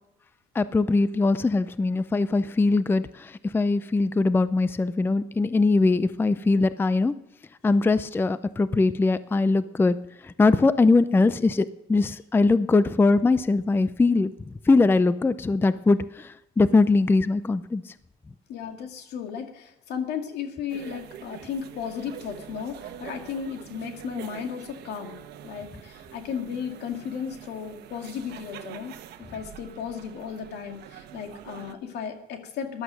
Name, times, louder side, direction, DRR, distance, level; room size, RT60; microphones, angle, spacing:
voice 1, 0.5-7.1 7.6-10.0 10.2-14.3 14.7-17.9, left 3 dB, 15° left, 15 dB, 0.4 m, -21 dB
voice 2, 18.5-28.9 29.3-32.8, left 7 dB, 80° left, 5 dB, 2.2 m, -35 dB
sound 1, 20.7-31.7, right 10 dB, 75° right, 1.1 m, -44 dB
14.5 x 11.5 x 6.2 m, 0.86 s
cardioid pair, 110°, 17 cm